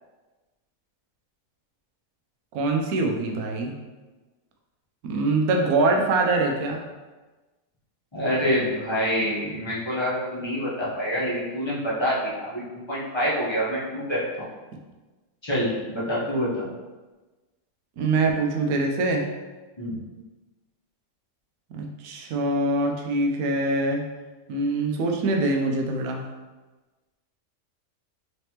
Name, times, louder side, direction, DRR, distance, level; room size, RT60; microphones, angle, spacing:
voice 1, 2.5-3.7 5.1-6.8 18.0-19.2 21.7-24.0 24.5-26.2, right 2 dB, 80° right, 2 dB, 1.1 m, -24 dB
voice 2, 8.1-14.5 15.4-16.7 19.8-20.0, equal, 20° left, -8 dB, 1.0 m, -26 dB
4.0 x 3.3 x 2.9 m, 1.2 s
omnidirectional pair, 1.5 m